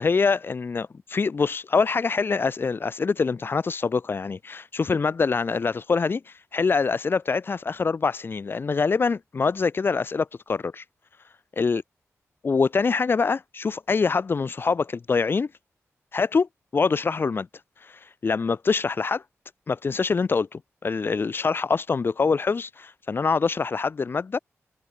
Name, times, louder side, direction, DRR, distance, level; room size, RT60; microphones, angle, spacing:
voice 1, 0.0-10.8 11.6-11.8 12.4-15.5 16.1-17.5 17.8-19.2 19.7-24.4, left 4 dB, 45° left, 3.8 m, -25 dB
wide cardioid pair, 140°, 5 cm